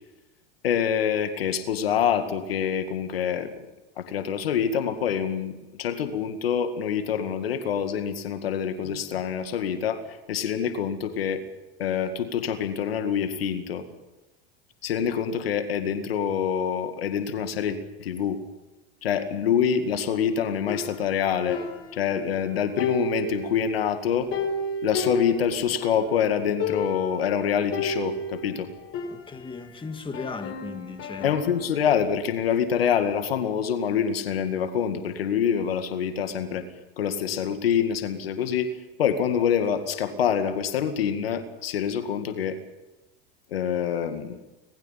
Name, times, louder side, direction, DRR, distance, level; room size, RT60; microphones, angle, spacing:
voice 1, 0.6-3.5 4.0-11.4 11.8-13.8 14.8-18.4 19.0-21.6 21.9-24.3 24.8-28.7 31.2-36.6 37.0-38.7 39.0-42.6 43.5-44.4, left 8 dB, 85° left, 2.0 m, -26 dB
sound 1, 20.7-22.4 22.8-26.1 26.3-26.4 26.6-27.2 27.7-29.7 30.1-31.8, left 2 dB, 50° left, 4.1 m, -32 dB
voice 2, 29.1-31.4, left 4 dB, 15° left, 2.0 m, -36 dB
25.5 x 20.0 x 5.8 m
hypercardioid pair, 90°, 29 cm